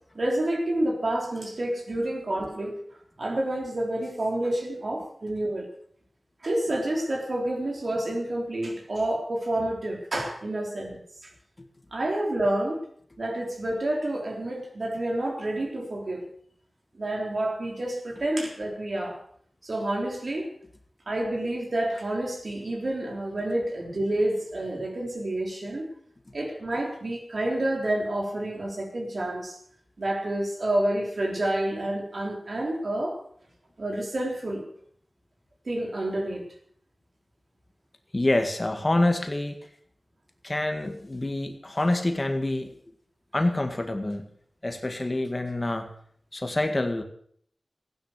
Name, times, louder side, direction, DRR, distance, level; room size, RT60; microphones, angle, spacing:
voice 1, 0.1-2.8 3.2-5.7 6.4-11.3 11.9-12.8 13.2-16.3 16.9-19.2 19.6-20.5 21.1-25.9 26.3-29.6 30.0-33.2 33.8-34.6 35.7-36.5, right 1 dB, 60° right, 1 dB, 3.8 m, -29 dB
voice 2, 38.1-39.6 40.4-42.8 43.3-44.3 44.6-45.9 46.3-47.0, left 1 dB, 30° left, 6 dB, 1.9 m, -26 dB
15.5 x 10.5 x 6.7 m, 0.62 s
wide cardioid pair, 70°, 0 cm